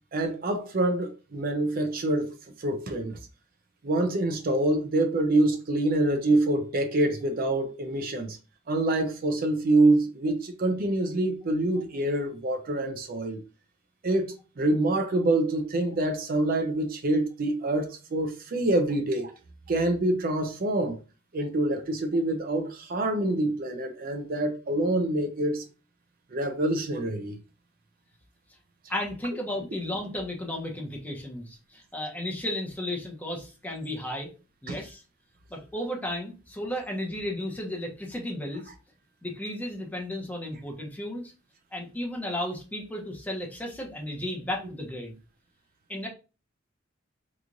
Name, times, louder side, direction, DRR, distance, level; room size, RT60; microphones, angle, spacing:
voice 1, 0.1-3.2 3.8-8.4 8.7-13.4 14.0-19.3 19.7-21.0 21.3-25.6 26.3-27.4 34.7-34.8, right 2 dB, 50° right, 0.5 m, -26 dB
voice 2, 28.9-34.3 34.6-35.0 35.5-38.7 39.2-41.3 41.7-45.1 45.9-46.1, left 1 dB, 10° left, 0.8 m, -34 dB
3.0 x 2.5 x 3.7 m
head